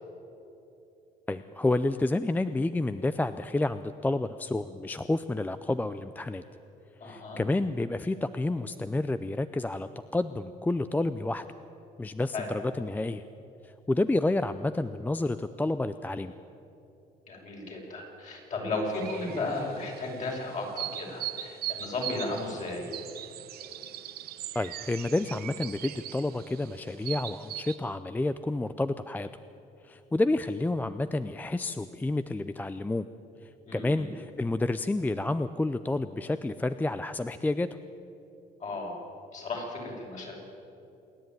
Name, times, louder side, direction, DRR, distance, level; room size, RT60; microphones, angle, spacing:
voice 1, 1.3-6.4 7.0-11.4 12.0-13.2 13.6-16.3 24.5-29.3 29.8-33.1 33.4-37.8, left 2 dB, 10° left, 12 dB, 0.5 m, -29 dB
voice 2, 7.0-7.4 12.3-12.5 17.3-22.9 33.7-34.1 38.6-39.0 39.3-40.3, left 2 dB, 45° left, -1 dB, 6.4 m, -34 dB
sound 1, 18.9-27.8, right 12 dB, 65° right, 1.1 m, -40 dB
27.5 x 10.5 x 9.3 m, 2.9 s
cardioid pair, 110°, 17 cm